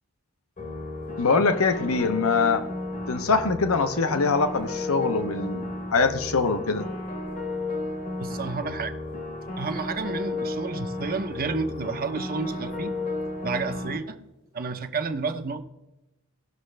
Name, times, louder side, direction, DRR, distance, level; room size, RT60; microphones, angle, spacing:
sound 1, 0.6-14.0, left 2 dB, 40° left, 1.1 m, -33 dB
voice 1, 1.2-2.7 3.1-5.6 5.9-6.9, left 4 dB, 65° left, 9 dB, 0.9 m, -23 dB
voice 2, 8.2-9.0 9.6-13.0 13.4-14.2 14.5-15.6, right 4 dB, 40° right, 8 dB, 0.8 m, -30 dB
17.5 x 6.3 x 3.3 m, 0.97 s
head